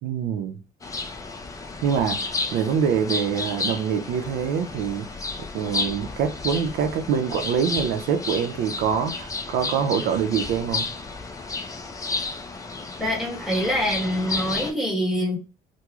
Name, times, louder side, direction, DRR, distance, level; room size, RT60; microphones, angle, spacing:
voice 1, 0.0-0.6 1.8-5.1 5.5-10.9, right 7 dB, 80° right, 0.7 m, -25 dB
sound 1, 0.8-14.7, left 3 dB, 20° left, 0.6 m, -32 dB
voice 2, 13.0-15.4, equal, ahead, 1.4 m, -25 dB
3.6 x 2.2 x 3.0 m
cardioid pair, 110°, 17 cm